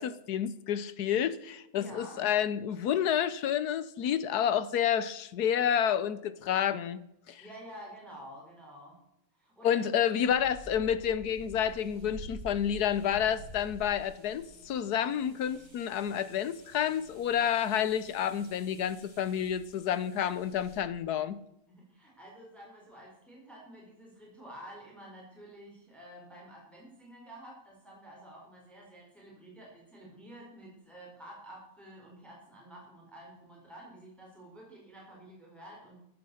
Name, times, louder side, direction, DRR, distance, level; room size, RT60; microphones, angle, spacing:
voice 1, 0.0-7.4 9.6-21.4, left 9 dB, 65° left, 1.1 m, -29 dB
voice 2, 1.7-2.2 7.4-9.0 9.4-10.0 10.8-10.9 21.7-36.0, right 1 dB, ahead, 4.5 m, -50 dB
sound 1, 10.3-20.8, right 1 dB, 45° right, 6.8 m, -50 dB
13.5 x 9.6 x 6.4 m
omnidirectional pair, 2.2 m